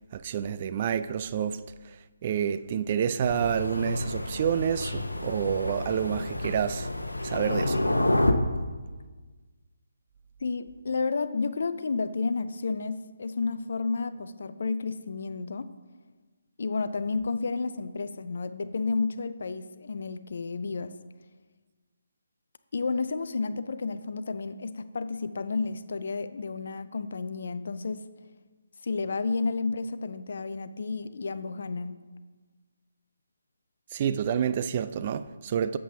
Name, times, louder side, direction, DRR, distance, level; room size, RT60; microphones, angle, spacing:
voice 1, 0.1-2.0 2.2-6.9 7.2-7.8 33.9-35.8, right 8 dB, 30° right, 0.3 m, -28 dB
Thunder, 3.2-8.3, left 1 dB, 75° left, 0.9 m, -29 dB
voice 2, 10.4-15.7 16.6-20.9 22.7-28.0 28.8-32.0, left 4 dB, 50° left, 0.5 m, -31 dB
13.5 x 7.7 x 2.9 m
figure-of-eight pair, 145°, 0 cm